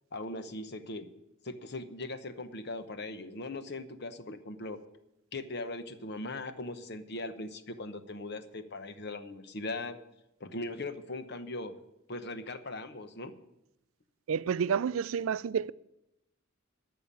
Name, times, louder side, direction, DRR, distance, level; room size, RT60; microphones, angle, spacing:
voice 1, 0.1-1.1 1.4-4.8 5.3-10.0 10.4-11.7 12.1-13.3, left 2 dB, 50° left, 1.0 m, -39 dB
voice 2, 14.3-15.7, right 7 dB, 75° right, 0.4 m, -29 dB
14.0 x 5.7 x 8.6 m
head